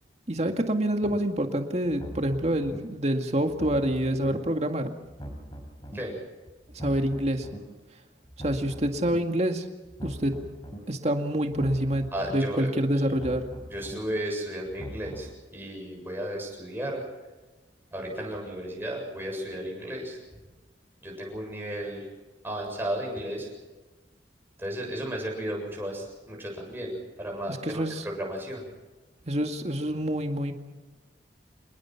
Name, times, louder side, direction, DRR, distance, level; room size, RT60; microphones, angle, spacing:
voice 1, 0.3-4.9 6.7-7.5 8.4-9.6 10.0-10.3 10.9-13.4 27.5-28.0 29.3-30.5, right 1 dB, 40° right, 5 dB, 2.1 m, -27 dB
sound 1, 1.0-1.2 1.8-2.8 3.4-4.4 5.0-6.0 6.6-7.6 8.2-9.2 9.8-10.8 11.4-12.4 13.0-14.0 14.6-15.3, right 1 dB, 25° left, 4.5 m, -41 dB
voice 2, 12.1-12.7 13.7-17.0 17.9-20.2 21.0-22.0 22.4-23.5 24.6-28.6, right 1 dB, 15° right, 0 dB, 7.4 m, -34 dB
27.0 x 21.0 x 5.9 m, 1.2 s
head